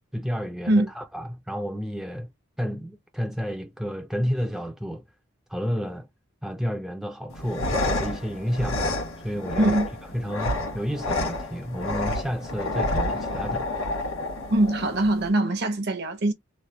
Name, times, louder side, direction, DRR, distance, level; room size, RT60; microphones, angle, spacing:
voice 1, 0.0-2.3 2.6-5.0 5.5-6.1 6.4-8.9 9.2-9.8 10.1-13.7, equal, ahead, 0.3 m, -31 dB
sound 1, 7.3-15.3, left 2 dB, 75° left, 1.2 m, -29 dB
voice 2, 9.6-9.9 14.5-16.3, right 1 dB, 50° right, 0.7 m, -22 dB
3.1 x 2.1 x 2.7 m
head